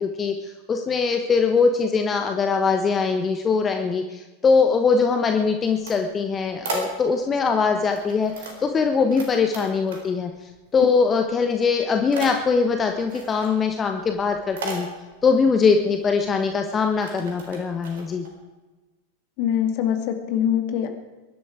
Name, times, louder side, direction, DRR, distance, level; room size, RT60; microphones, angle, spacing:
voice 1, 0.0-14.9 15.2-18.3, left 5 dB, 20° left, 5 dB, 1.2 m, -22 dB
sound 1, 5.5-7.4 7.8-9.3 9.5-10.4 10.6-11.3 11.6-18.3, right 3 dB, 60° right, 4.1 m, -36 dB
voice 2, 19.4-20.9, left 9 dB, 45° left, 7 dB, 2.3 m, -23 dB
22.5 x 11.5 x 4.8 m, 1.2 s
figure-of-eight pair, 90°, 0 cm